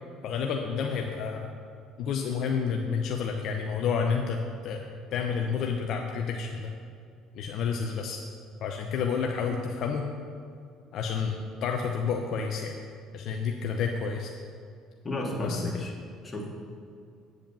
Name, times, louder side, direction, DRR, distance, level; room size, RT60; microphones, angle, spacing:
voice 1, 0.2-1.5 2.0-4.8 5.1-6.7 7.3-8.2 8.6-10.1 10.9-12.7 13.1-14.3 15.4-15.9, left 6 dB, 65° left, 2 dB, 0.7 m, -30 dB
voice 2, 15.0-15.9 16.2-16.5, left 1 dB, 30° left, 0 dB, 2.1 m, -32 dB
9.2 x 5.0 x 6.9 m, 2.3 s
hypercardioid pair, 70°, 0 cm